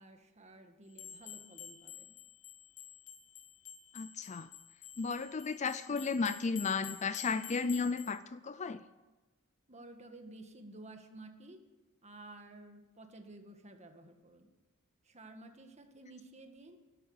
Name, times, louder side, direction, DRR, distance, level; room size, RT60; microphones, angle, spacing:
voice 1, 0.0-2.2 9.7-11.6 12.0-14.5 15.0-16.8, right 2 dB, 30° right, 5 dB, 1.7 m, -53 dB
sound 1, 0.9-8.2, left 10 dB, 70° left, 1.3 m, -50 dB
voice 2, 3.9-4.5 5.0-8.8, left 4 dB, 30° left, 14 dB, 0.4 m, -34 dB
13.0 x 12.0 x 7.1 m, 1.2 s
head